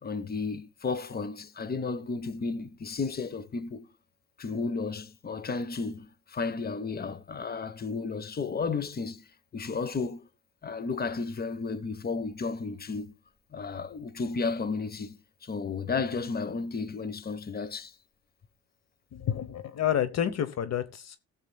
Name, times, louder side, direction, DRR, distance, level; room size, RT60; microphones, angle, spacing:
voice 1, 0.0-3.9 4.4-9.3 9.5-10.3 10.6-13.1 13.5-17.9, left 4 dB, 30° left, 1.1 m, -33 dB
voice 2, 19.1-21.2, left 10 dB, 60° left, 1.0 m, -29 dB
19.0 x 7.3 x 2.3 m
cardioid pair, 90°, 30 cm